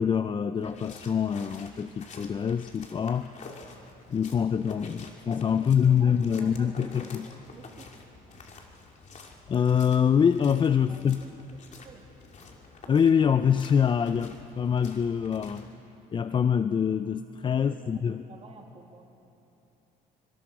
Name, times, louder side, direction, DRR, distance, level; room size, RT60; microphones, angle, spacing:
voice 1, 0.0-3.3 4.1-7.3 9.5-11.2 12.9-15.7 16.1-18.2, left 7 dB, 30° left, 12 dB, 0.4 m, -25 dB
sound 1, 0.6-15.7, left 4 dB, 45° left, 2.6 m, -49 dB
voice 2, 5.5-7.9 10.9-11.4 11.8-12.1 17.5-18.0 18.3-19.0, right 4 dB, 35° right, 1 dB, 2.4 m, -50 dB
25.0 x 24.5 x 4.8 m, 2.9 s
cardioid pair, 110°, 17 cm